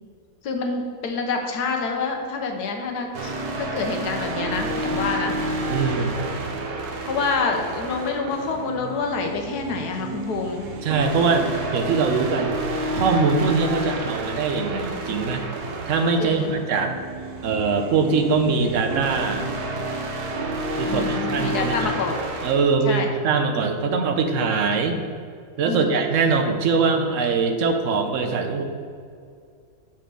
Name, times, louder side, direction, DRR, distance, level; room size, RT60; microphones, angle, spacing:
voice 1, 0.4-5.3 7.1-10.6 16.2-16.5 20.8-22.2 22.8-23.1 25.6-26.0, left 4 dB, 80° left, 3 dB, 1.4 m, -27 dB
sound 1, 3.1-22.5, right 1 dB, 75° right, 1.4 m, -30 dB
voice 2, 5.7-6.1 10.8-12.5 12.9-15.4 15.9-16.9 17.4-19.4 20.8-21.9 22.4-25.0 25.6-28.6, right 4 dB, 60° right, 5 dB, 1.0 m, -22 dB
6.0 x 4.3 x 6.1 m, 2.3 s
omnidirectional pair, 1.7 m